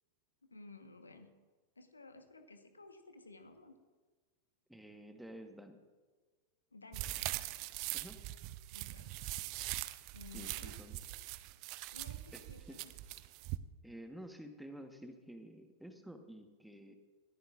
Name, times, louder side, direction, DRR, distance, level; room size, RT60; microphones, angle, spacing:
voice 1, 0.5-1.3 1.8-3.8 6.7-7.2 8.7-9.1 10.1-10.8 11.9-12.8, left 3 dB, 80° left, 7 dB, 1.2 m, -55 dB
voice 2, 4.7-5.8 7.9-8.2 10.3-11.0 12.3-12.9 13.8-16.9, right 1 dB, ahead, 6 dB, 1.2 m, -51 dB
sound 1, 6.9-13.6, right 17 dB, 45° right, 0.5 m, -42 dB
20.0 x 14.5 x 2.5 m, 1.3 s
figure-of-eight pair, 90°, 0 cm